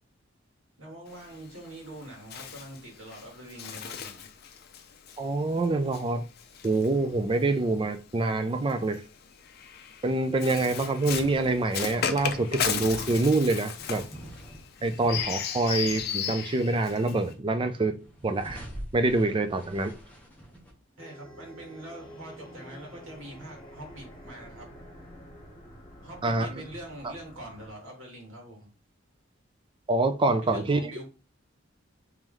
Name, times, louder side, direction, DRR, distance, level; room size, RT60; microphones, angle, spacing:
voice 1, 0.8-4.3 21.0-24.7 26.0-28.7 30.4-31.1, right 1 dB, 80° right, 1.6 m, -44 dB
Bird, 1.1-7.6 8.5-17.3, left 7 dB, 50° left, 0.5 m, -36 dB
voice 2, 5.2-6.2 6.6-9.0 10.0-14.0 14.8-17.9 18.2-18.6 18.9-19.9 26.2-26.6 29.9-30.9, right 2 dB, 25° right, 0.4 m, -26 dB
sound 1, 11.1-16.2 16.5-17.4 17.8-20.7, equal, 10° left, 1.0 m, -46 dB
sound 2, 20.2-27.7, equal, 30° left, 1.6 m, -49 dB
3.1 x 3.0 x 3.7 m
head